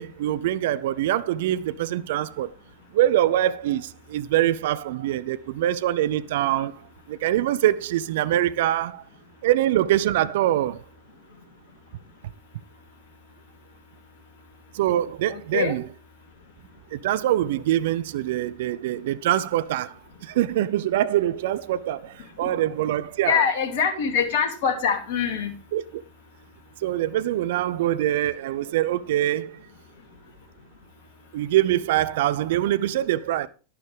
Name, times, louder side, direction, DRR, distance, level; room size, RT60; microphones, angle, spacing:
voice 1, 0.0-2.5 2.9-6.7 7.1-9.0 9.4-10.8 14.7-15.8 16.9-19.9 20.2-23.5 25.7-26.0 26.8-29.6 31.3-33.5, right 13 dB, 55° right, 0.5 m, -24 dB
voice 2, 15.3-15.8 22.4-22.5 23.2-25.5, left 7 dB, 50° left, 2.7 m, -24 dB
12.0 x 11.5 x 3.4 m
figure-of-eight pair, 90°, 0 cm